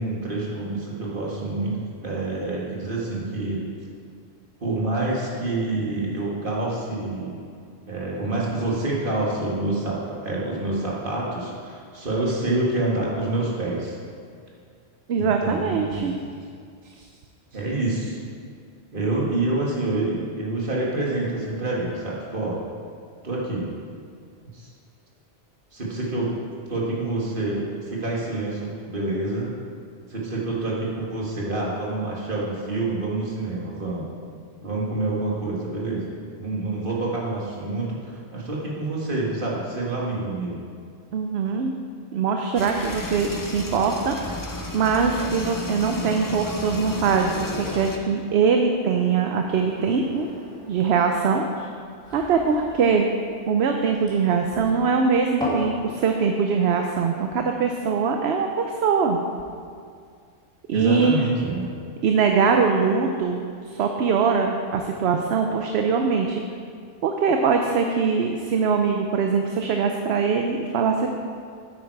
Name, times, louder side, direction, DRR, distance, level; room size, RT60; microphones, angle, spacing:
voice 1, 0.0-1.8 2.0-3.6 4.6-7.4 7.9-14.0 15.2-16.2 17.5-18.2 18.9-22.6 23.2-23.7 24.5-24.7 25.7-26.3 26.7-29.5 30.1-34.1 34.6-40.7 60.7-61.7, right 2 dB, 50° right, -5 dB, 2.1 m, -27 dB
voice 2, 15.1-16.2 17.0-17.1 41.1-41.7 42.1-44.2 44.7-50.3 50.7-51.7 52.1-53.1 53.5-59.2 60.7-61.2 62.0-63.4 63.7-66.4 67.0-71.1, right 5 dB, 70° right, 3 dB, 0.9 m, -22 dB
sound 1, 42.5-48.0, left 1 dB, 20° left, 0.7 m, -33 dB
sound 2, 49.2-55.7, equal, 5° left, 2.3 m, -37 dB
9.5 x 8.6 x 4.7 m, 2.2 s
omnidirectional pair, 1.1 m